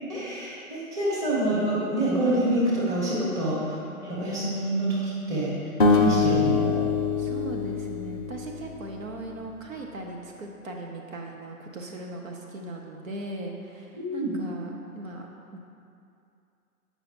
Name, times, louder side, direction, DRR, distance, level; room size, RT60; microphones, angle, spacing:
voice 1, 0.1-3.8 4.0-5.0 5.3-5.5 5.9-6.7 14.0-14.4, right 1 dB, 5° right, -9 dB, 1.1 m, -26 dB
voice 2, 3.3-3.6 7.2-15.3 15.5-15.6, right 2 dB, 60° right, 1 dB, 0.8 m, -38 dB
sound 1, 5.8-9.0, left 4 dB, 35° left, 0.5 m, -24 dB
8.2 x 5.5 x 3.0 m, 2.5 s
figure-of-eight pair, 130°, 45 cm